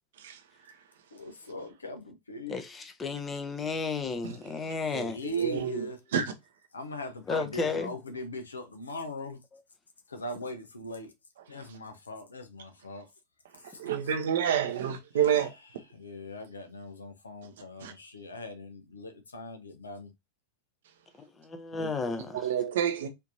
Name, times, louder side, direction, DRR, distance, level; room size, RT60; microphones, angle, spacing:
voice 1, 1.1-2.6 5.0-6.0 6.7-9.4 10.1-11.1 11.5-13.1 13.7-13.8 15.1-15.5 15.9-20.1, equal, 75° left, 0.8 m, -40 dB
voice 2, 2.5-5.2 7.3-7.9 21.4-22.5, left 4 dB, 15° left, 0.7 m, -33 dB
voice 3, 4.9-5.8 6.1-6.3 13.8-15.5 17.8-17.9 22.3-23.1, right 9 dB, 60° right, 0.8 m, -28 dB
4.4 x 2.9 x 2.6 m
figure-of-eight pair, 90°, 0 cm